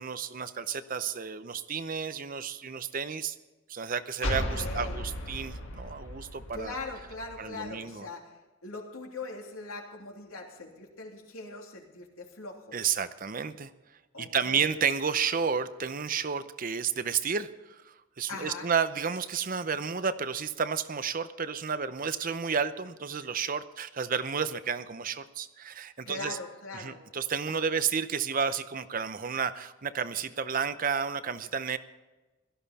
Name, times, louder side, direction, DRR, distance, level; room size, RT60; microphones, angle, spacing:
voice 1, 0.0-3.4 3.7-6.8 7.4-8.1 12.7-13.7 14.2-26.4 26.7-31.8, right 6 dB, 40° right, 13 dB, 0.7 m, -31 dB
sound 1, 4.2-7.7, left 1 dB, 60° left, 2.0 m, -35 dB
voice 2, 4.5-5.0 6.5-8.3 8.6-12.8 14.1-14.6 18.3-18.7 26.1-27.0, left 3 dB, 90° left, 1 dB, 3.0 m, -41 dB
17.0 x 13.5 x 4.2 m, 1.1 s
head